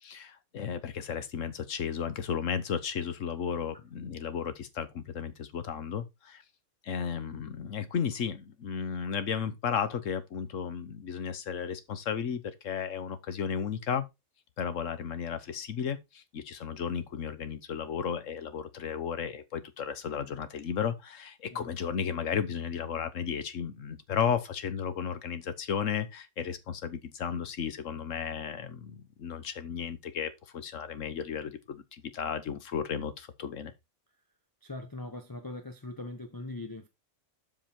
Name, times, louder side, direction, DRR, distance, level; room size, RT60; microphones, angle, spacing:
voice 1, 0.0-6.4 6.8-14.0 14.6-33.7, left 7 dB, 70° left, 1.4 m, -34 dB
voice 2, 34.6-36.9, left 2 dB, 20° left, 0.8 m, -41 dB
7.7 x 5.4 x 4.3 m
omnidirectional pair, 1.4 m